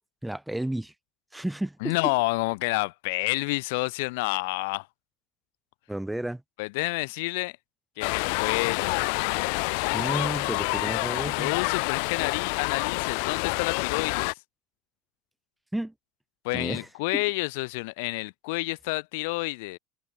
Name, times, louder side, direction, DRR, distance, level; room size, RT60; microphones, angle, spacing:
voice 1, 0.2-0.9 1.3-2.1 5.9-6.4 9.9-11.6 15.7-15.9 16.5-17.2, right 1 dB, 5° right, 3.6 m, -32 dB
voice 2, 1.8-4.9 6.6-7.6 8.0-9.1 11.4-14.3 16.4-19.8, left 26 dB, 85° left, 5.0 m, -29 dB
sound 1, 8.0-14.3, left 37 dB, 70° left, 1.2 m, -28 dB
cardioid pair, 175°, 0 cm